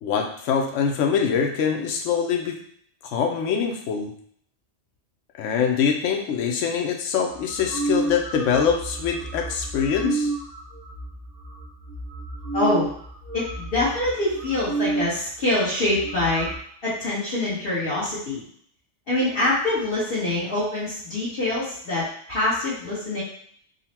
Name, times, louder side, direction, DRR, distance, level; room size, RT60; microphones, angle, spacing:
voice 1, 0.0-2.6 3.0-4.1 5.4-10.3, left 7 dB, 80° left, 2 dB, 0.9 m, -24 dB
sound 1, 7.3-15.2 15.5-15.6 15.8-16.6, right 3 dB, 40° right, 0.8 m, -31 dB
voice 2, 12.5-12.9 13.3-16.5 16.8-18.4 19.1-23.2, left 2 dB, 50° left, -11 dB, 1.4 m, -25 dB
3.9 x 2.1 x 4.2 m, 0.62 s
omnidirectional pair, 1.3 m